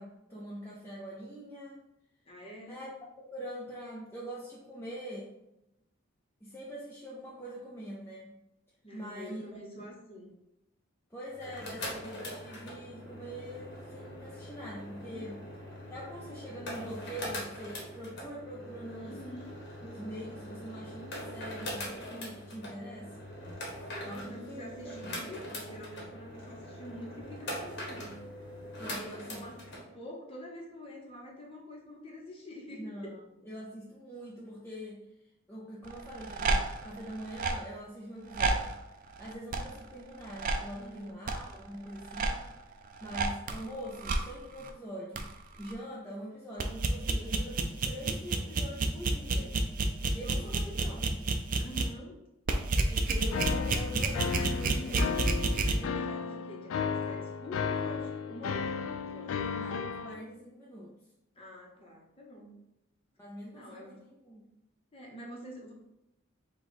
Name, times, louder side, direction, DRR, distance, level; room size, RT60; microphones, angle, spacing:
voice 1, 0.0-1.8 2.7-2.9 3.2-5.3 6.4-8.4 8.9-9.9 11.1-15.4 15.9-19.2 19.8-23.3 24.1-24.9 28.8-29.4 32.7-35.1 35.5-38.8 39.2-42.4 43.0-45.3 45.6-49.6 50.1-51.2 52.9-55.1 59.5-60.9 63.2-64.5, equal, 10° left, -6 dB, 0.6 m, -44 dB
voice 2, 2.2-2.8 8.8-10.4 15.0-15.3 19.0-19.5 23.9-28.2 28.9-33.1 40.7-41.2 50.1-51.0 51.6-52.2 54.4-59.5 61.3-62.6 63.5-64.0 64.9-65.7, left 1 dB, 25° left, -2 dB, 1.0 m, -46 dB
sound 1, 11.3-29.8, left 1 dB, 55° left, 1.1 m, -42 dB
sound 2, 35.9-37.6 38.3-38.8 39.2-39.9 40.3-40.7 41.3-41.5 42.0-42.5 43.0-43.6 44.0-44.2 44.6-44.7 45.2-45.3 45.7-45.8 46.6-51.9 52.5-55.8, right 3 dB, 40° right, 0.4 m, -30 dB
sound 3, 53.3-60.2, left 5 dB, 70° left, 0.3 m, -34 dB
4.9 x 2.4 x 4.0 m, 0.87 s
head